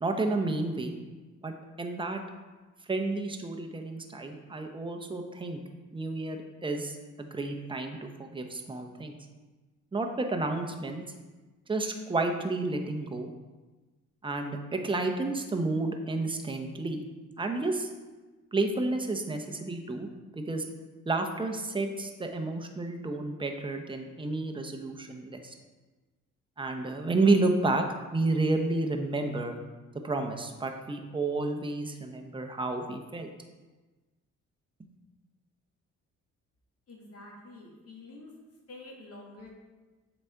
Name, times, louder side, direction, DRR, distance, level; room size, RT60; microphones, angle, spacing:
voice 1, 0.0-1.0 1.4-2.2 2.9-5.6 5.9-9.2 9.9-11.0 11.7-13.3 14.2-17.0 17.4-17.9 18.5-20.1 20.3-20.6 21.1-25.5 26.6-27.9 28.1-29.6 30.0-33.3, right 2 dB, 15° right, 4 dB, 0.8 m, -31 dB
voice 2, 36.9-38.3 38.7-39.5, left 2 dB, 50° left, -2 dB, 1.9 m, -48 dB
7.1 x 4.1 x 4.6 m, 1.2 s
cardioid pair, 90°, 30 cm